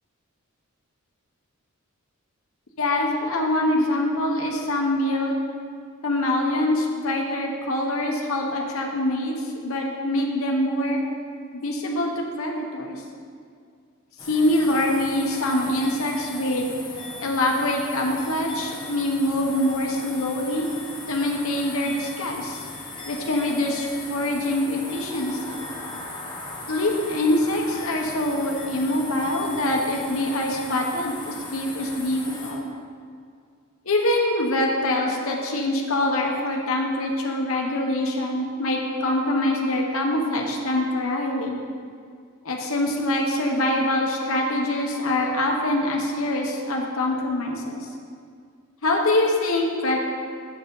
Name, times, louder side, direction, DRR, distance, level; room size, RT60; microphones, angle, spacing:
voice 1, 2.8-5.3 6.0-11.0 11.5-13.0 14.2-16.7 17.2-20.7 21.1-22.7 23.1-25.6 26.7-32.7 33.8-41.6 42.4-47.9 48.8-50.0, left 1 dB, 70° left, 0 dB, 1.1 m, -24 dB
sound 1, 14.2-32.5, left 2 dB, 20° left, 1.3 m, -38 dB
7.4 x 7.0 x 5.4 m, 2.2 s
head